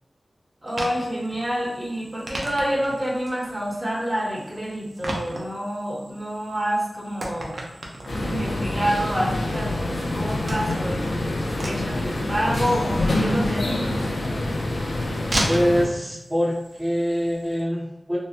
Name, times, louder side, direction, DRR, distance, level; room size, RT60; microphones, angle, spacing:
voice 1, 0.6-7.5 8.2-11.3 11.6-14.0, equal, 35° right, -5 dB, 1.0 m, -28 dB
sound 1, 0.7-17.6, right 1 dB, 65° right, 0.5 m, -37 dB
sound 2, 8.1-15.9, left 1 dB, 75° left, 0.4 m, -26 dB
voice 2, 15.4-18.2, equal, 10° right, -9 dB, 0.7 m, -24 dB
2.9 x 2.1 x 2.5 m, 0.91 s
cardioid pair, 40°, 0 cm